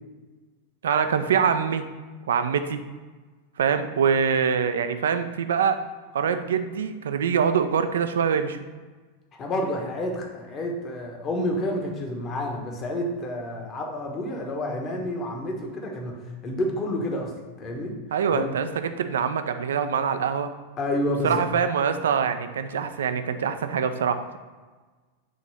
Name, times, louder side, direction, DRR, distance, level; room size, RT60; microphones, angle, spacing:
voice 1, 0.8-1.8 2.3-2.8 3.6-5.8 6.1-8.6 18.1-20.5 21.2-24.4, right 7 dB, 65° right, 9 dB, 0.4 m, -24 dB
voice 2, 9.4-16.2 16.4-17.3 17.6-17.9 18.3-18.5 20.8-21.5, left 1 dB, 30° left, 1 dB, 1.2 m, -29 dB
6.4 x 3.0 x 5.5 m, 1.4 s
figure-of-eight pair, 90°, 0 cm